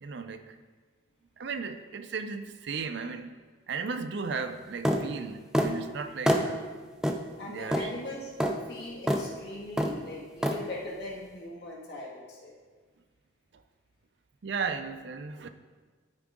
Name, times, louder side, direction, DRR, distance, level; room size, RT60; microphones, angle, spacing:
voice 1, 0.0-0.6 1.4-3.3 3.7-6.6 7.4-7.9 14.4-15.5, right 5 dB, 60° right, 9 dB, 0.5 m, -35 dB
sound 1, 4.8-5.0 5.5-5.7 6.3-6.5 7.0-7.2 7.7-7.9 8.4-8.5 9.1-9.2 9.8-10.0 10.4-10.6, equal, 5° right, 0.4 m, -25 dB
voice 2, 7.4-8.3 8.7-12.5, left 1 dB, 55° left, -4 dB, 1.9 m, -40 dB
12.0 x 4.9 x 3.6 m, 1.4 s
head